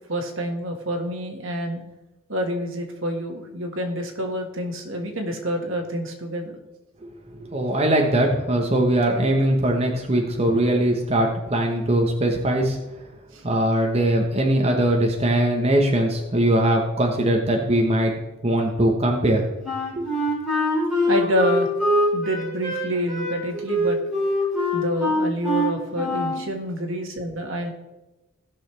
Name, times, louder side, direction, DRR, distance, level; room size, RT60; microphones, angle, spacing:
voice 1, 0.1-1.8 2.3-6.6 13.3-13.4 20.0-20.1 21.1-21.7 22.1-24.0 24.7-27.7, equal, 75° right, 3 dB, 1.7 m, -27 dB
voice 2, 7.3-12.8 13.4-19.4 19.9-20.1, right 1 dB, 30° right, 1 dB, 1.0 m, -21 dB
Wind instrument woodwind instrument, 19.6-26.5, left 1 dB, 5° right, 3.8 m, -24 dB
16.5 x 6.3 x 3.3 m, 1.0 s
head